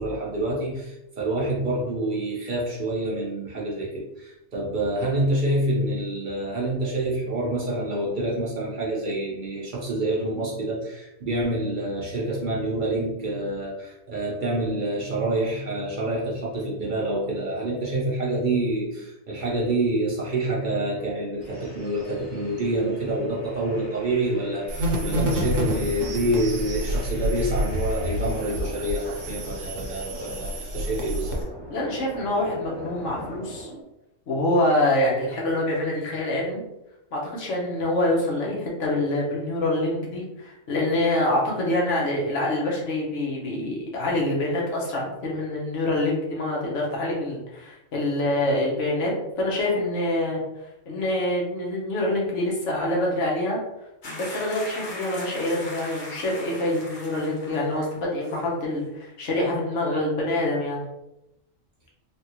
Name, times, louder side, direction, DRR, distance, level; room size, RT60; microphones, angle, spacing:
voice 1, 0.0-31.5, right 1 dB, 50° right, -4 dB, 0.7 m, -27 dB
sound 1, 21.4-28.6 29.0-33.8, right 1 dB, 20° left, 1.3 m, -44 dB
sound 2, 24.7-31.4, equal, 75° right, 1.1 m, -28 dB
voice 2, 31.7-33.7 34.3-36.6 37.1-49.1 49.4-50.4 50.9-53.6 54.0-60.8, left 1 dB, 80° left, -2 dB, 1.2 m, -25 dB
sound 3, 54.0-58.0 58.2-58.4, left 1 dB, 45° left, 0.9 m, -39 dB
3.4 x 2.3 x 2.8 m, 0.90 s
omnidirectional pair, 1.2 m